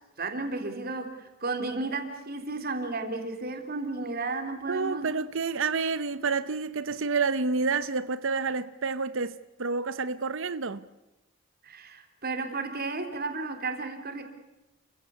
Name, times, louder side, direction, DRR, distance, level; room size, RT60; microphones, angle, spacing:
voice 1, 0.2-5.1 11.6-14.2, right 3 dB, 45° right, 3.6 m, -33 dB
voice 2, 4.6-10.8, right 4 dB, 65° right, 0.8 m, -29 dB
29.5 x 16.0 x 8.5 m
head